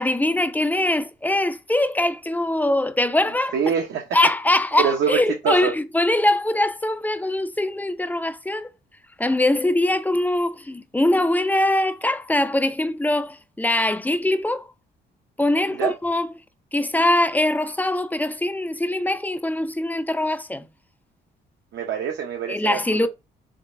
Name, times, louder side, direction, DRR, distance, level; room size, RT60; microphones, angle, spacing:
voice 1, 0.0-3.6 4.1-8.7 9.2-14.7 15.4-16.3 16.7-20.7 22.5-23.1, left 1 dB, 10° left, 0.4 m, -22 dB
voice 2, 3.5-4.0 4.8-5.7 15.8-15.9 21.7-22.8, right 7 dB, 70° right, 0.8 m, -24 dB
3.8 x 3.2 x 2.5 m
cardioid pair, 90°, 20 cm